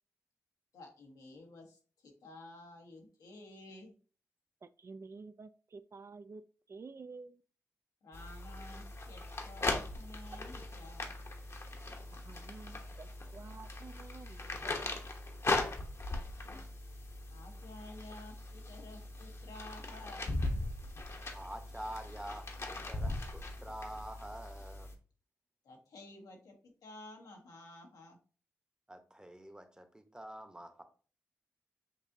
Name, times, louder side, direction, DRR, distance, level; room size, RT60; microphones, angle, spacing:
voice 1, 0.7-3.9 8.0-11.2 12.4-13.0 16.3-16.6 17.3-20.3 25.6-28.2, left 2 dB, 90° left, 1.1 m, -53 dB
voice 2, 4.6-6.4 6.7-7.4 12.1-15.0, right 4 dB, 50° right, 0.3 m, -51 dB
sound 1, 8.1-24.9, left 2 dB, 50° left, 0.9 m, -39 dB
voice 3, 21.3-24.9 28.9-30.8, right 1 dB, 15° right, 0.8 m, -47 dB
7.0 x 2.6 x 2.6 m
cardioid pair, 55°, 6 cm